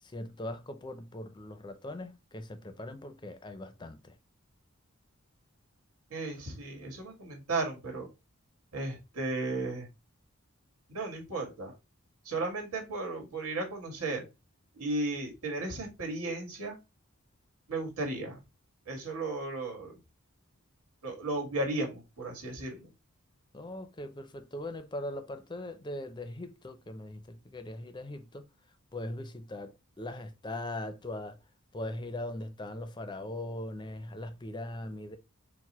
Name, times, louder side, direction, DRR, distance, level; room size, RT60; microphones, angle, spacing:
voice 1, 0.0-4.2 23.5-28.4 28.9-31.4 31.7-35.2, left 1 dB, 20° left, 0.4 m, -40 dB
voice 2, 6.1-8.1 8.7-9.9 10.9-11.7 12.2-14.2 14.7-16.8 17.7-18.4 18.8-20.0 21.0-22.9, right 2 dB, 90° right, 1.6 m, -35 dB
4.6 x 2.1 x 4.1 m
head